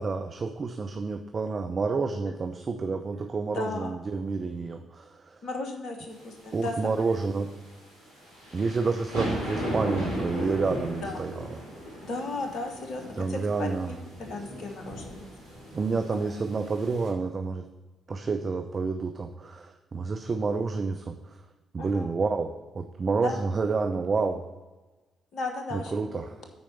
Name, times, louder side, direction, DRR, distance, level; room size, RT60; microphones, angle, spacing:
voice 1, 0.0-5.4 6.5-7.5 8.5-11.6 13.1-13.9 15.7-17.7 18.1-21.4 21.7-24.4 25.7-26.4, right 4 dB, 40° right, 6 dB, 0.5 m, -29 dB
voice 2, 3.5-3.9 5.4-7.2 8.6-8.9 11.0-11.2 12.0-15.2 16.0-16.3 21.8-22.1 23.2-23.4 25.3-26.0, left 3 dB, 60° left, 4 dB, 1.1 m, -36 dB
sound 1, 6.2-17.1, equal, 85° right, 2.0 m, -37 dB
9.6 x 4.4 x 5.7 m, 1.2 s
figure-of-eight pair, 40°, 0 cm